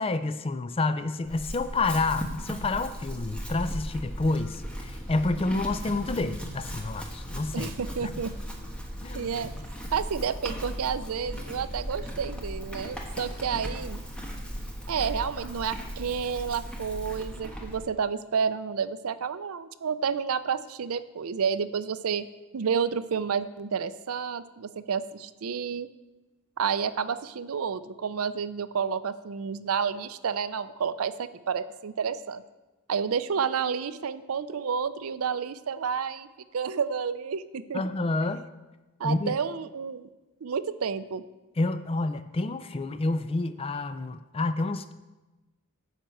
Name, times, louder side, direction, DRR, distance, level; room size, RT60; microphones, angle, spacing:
voice 1, 0.0-7.7 8.0-8.1 9.0-9.3 37.7-38.4 39.0-39.4 41.6-44.9, left 2 dB, 25° left, 11 dB, 0.4 m, -29 dB
Chewing mastication / Livestock farm animals working animals, 1.2-17.8, equal, 5° left, 1.2 m, -37 dB
voice 2, 7.5-8.3 9.1-9.5 9.9-14.0 14.9-22.3 22.5-25.9 26.6-32.4 32.9-36.3 36.5-37.8 39.0-40.1 40.4-41.2, right 6 dB, 70° right, 14 dB, 0.5 m, -30 dB
sound 1, 11.2-18.0, equal, 25° right, 1.6 m, -53 dB
10.0 x 5.4 x 7.5 m, 1.1 s
head